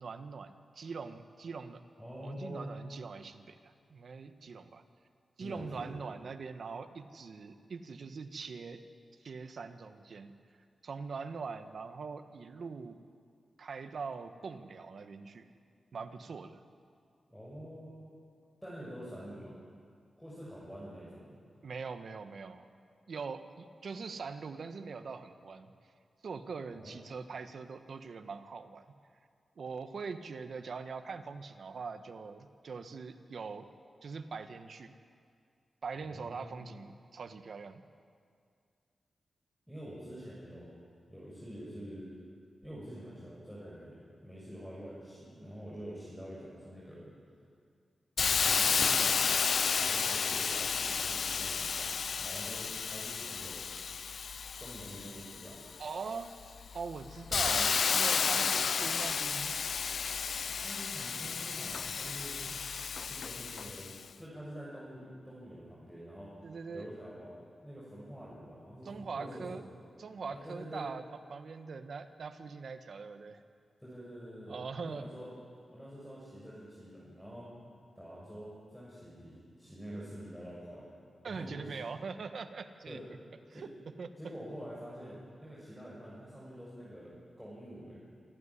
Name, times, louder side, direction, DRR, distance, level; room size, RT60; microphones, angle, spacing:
voice 1, 0.0-1.8 2.2-4.8 5.4-8.8 9.2-10.3 10.8-13.0 13.6-15.5 15.9-16.6 21.6-22.7 23.1-25.7 26.2-28.8 29.6-33.7 34.0-34.9 35.8-37.8 55.8-56.3 56.7-59.6 62.0-62.1 66.4-66.9 68.8-69.6 70.0-71.0 71.3-73.4 74.5-75.0 81.2-83.0 83.5-83.7 84.0-84.1, right 5 dB, 70° right, 8 dB, 1.3 m, -42 dB
voice 2, 2.0-2.7 5.4-5.9 17.3-18.1 18.6-19.5 20.2-21.4 26.7-27.0 36.0-36.6 39.7-40.8 41.1-42.1 42.6-47.1 48.2-49.4 49.8-53.6 54.0-54.1 54.6-55.6 57.3-57.7 60.4-62.3 63.1-69.6 70.3-70.9 73.8-75.3 75.7-77.5 77.9-80.9 81.3-81.8 82.9-83.0 83.5-83.7 84.2-88.0, equal, ahead, -7 dB, 6.9 m, -46 dB
Hiss, 48.2-55.7 56.3-64.0, left 6 dB, 70° left, 0.5 m, -32 dB
27.5 x 12.5 x 9.9 m, 2.2 s
cardioid pair, 80°, 0 cm